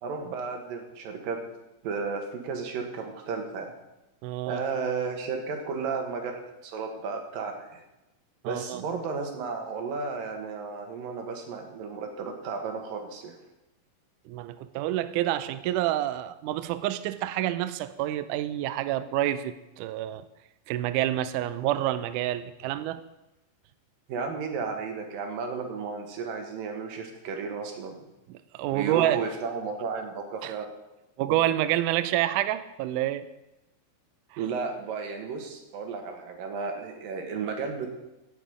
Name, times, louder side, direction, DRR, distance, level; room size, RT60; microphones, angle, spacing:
voice 1, 0.0-1.5 1.8-3.7 4.5-7.8 8.4-13.4 24.1-28.0 28.7-30.7 31.3-31.4 34.4-37.9, right 5 dB, 70° right, 4 dB, 3.1 m, -33 dB
voice 2, 4.2-4.6 8.4-8.8 14.3-20.3 20.7-23.0 28.3-29.2 30.4-30.5 31.2-33.3 34.3-34.4, right 13 dB, 90° right, 12 dB, 1.8 m, -28 dB
16.5 x 7.0 x 5.0 m, 1.0 s
omnidirectional pair, 4.3 m